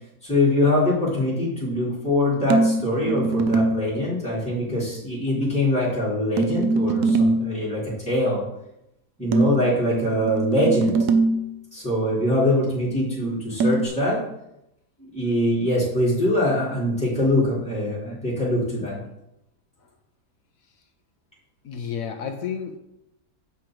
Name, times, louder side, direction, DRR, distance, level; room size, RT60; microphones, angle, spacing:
voice 1, 0.2-8.4 9.2-11.0 11.7-14.2 15.0-19.0, left 1 dB, 5° left, -8 dB, 3.0 m, -23 dB
sound 1, 2.5-3.9 6.4-7.6 9.3-11.5 13.6-13.9, right 3 dB, 80° right, 1.2 m, -22 dB
voice 2, 21.6-22.8, left 7 dB, 65° left, 5 dB, 1.2 m, -31 dB
8.4 x 5.1 x 4.5 m, 0.84 s
omnidirectional pair, 1.7 m